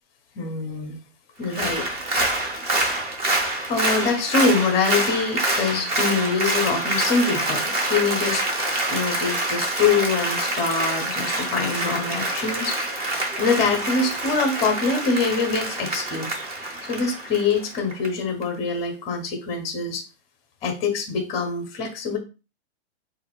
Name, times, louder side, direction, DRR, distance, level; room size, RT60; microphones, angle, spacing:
voice 1, 0.3-1.0 1.4-1.9 2.4-2.6 3.7-8.4 8.9-12.8 13.4-16.4 16.8-20.0 20.6-22.2, left 4 dB, 20° left, 4 dB, 0.6 m, -24 dB
Applause, 1.4-18.1 18.4-18.5, right 2 dB, 20° right, 0.7 m, -26 dB
3.8 x 2.5 x 4.5 m, 0.31 s
hypercardioid pair, 155°, 34 cm